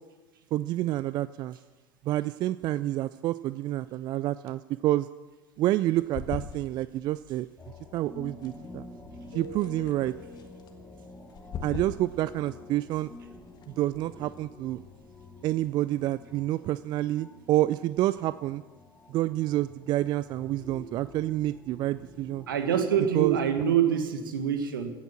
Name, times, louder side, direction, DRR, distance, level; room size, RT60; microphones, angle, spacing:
voice 1, 0.5-1.6 2.0-5.1 5.6-7.5 7.9-8.8 9.3-10.1 11.6-13.1 13.7-14.8 15.4-18.6 19.1-22.5 23.1-23.4, right 15 dB, 40° right, 17 dB, 0.4 m, -28 dB
sound 1, 5.9-16.2, left 7 dB, 35° left, 1.5 m, -45 dB
sound 2, 7.6-23.5, left 2 dB, 10° left, 2.3 m, -49 dB
Keyboard (musical), 9.3-11.3, left 9 dB, 65° left, 2.0 m, -47 dB
voice 2, 22.5-24.9, right 8 dB, 70° right, 8 dB, 1.6 m, -25 dB
16.5 x 8.8 x 7.3 m, 1.3 s
figure-of-eight pair, 70°, 12 cm